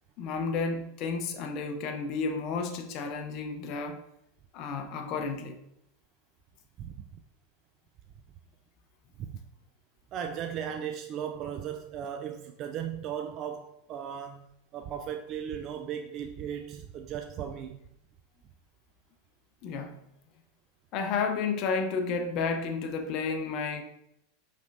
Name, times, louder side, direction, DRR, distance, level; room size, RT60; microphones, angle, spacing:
voice 1, 0.2-4.0 4.5-5.6 19.6-20.0 20.9-23.8, left 4 dB, 50° left, 4 dB, 0.6 m, -31 dB
voice 2, 10.1-14.5 14.7-17.8, right 8 dB, 45° right, 5 dB, 0.3 m, -37 dB
5.0 x 3.3 x 2.5 m, 0.77 s
hypercardioid pair, 100°, 0 cm